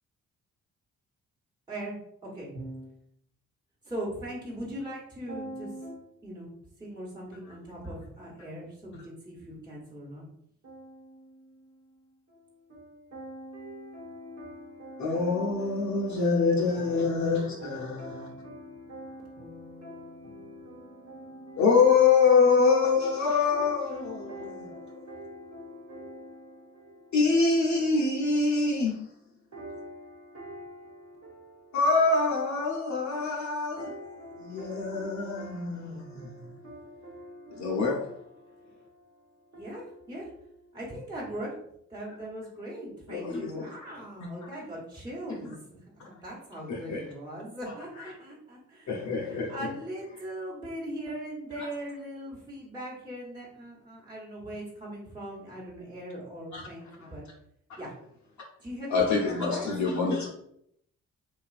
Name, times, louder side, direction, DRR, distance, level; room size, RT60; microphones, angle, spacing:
voice 1, 2.5-3.0 5.3-6.1 10.6-22.5 23.5-27.4 29.5-31.8 32.1-32.2 32.9-33.3 33.8-40.8, equal, 45° right, 1.2 m, -45 dB
voice 2, 3.8-5.7 6.2-6.5 6.8-10.2 39.6-40.3 40.7-41.5 41.9-48.9 49.3-57.3 57.7-57.9 58.6-59.7, right 1 dB, 10° right, 1.2 m, -40 dB
voice 3, 15.0-18.3 21.6-24.6 27.1-29.1 31.7-33.9 34.4-36.5 37.6-38.1 43.1-43.7 44.2-44.3 46.7-47.0 48.0-48.1 48.9-49.7 51.6-51.7 56.5-56.6 57.0-57.1 58.9-60.3, left 4 dB, 50° left, 0.7 m, -25 dB
3.0 x 2.3 x 2.4 m
hypercardioid pair, 45°, 36 cm